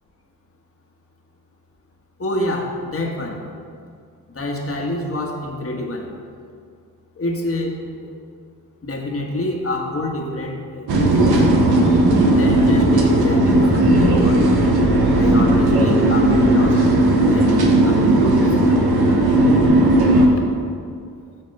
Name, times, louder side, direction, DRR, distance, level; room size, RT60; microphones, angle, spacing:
voice 1, 2.2-3.4 4.3-6.1 7.2-7.8 8.0-8.1 8.8-11.5 12.3-14.6 15.2-16.8 17.2-18.8, left 1 dB, 35° left, 1 dB, 1.4 m, -27 dB
sound 1, 10.9-20.3, right 1 dB, 75° right, 1.1 m, -15 dB
7.6 x 3.6 x 6.4 m, 2.2 s
supercardioid pair, 50°, 38 cm